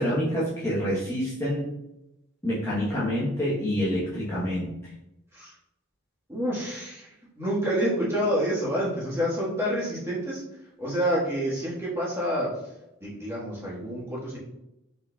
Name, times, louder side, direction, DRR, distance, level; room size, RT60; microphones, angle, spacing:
voice 1, 0.0-1.7 2.4-4.9, equal, 15° left, -9 dB, 0.9 m, -27 dB
voice 2, 6.3-10.4 10.8-12.5 13.0-14.4, equal, 15° right, -7 dB, 1.4 m, -28 dB
4.5 x 4.0 x 2.3 m, 0.89 s
head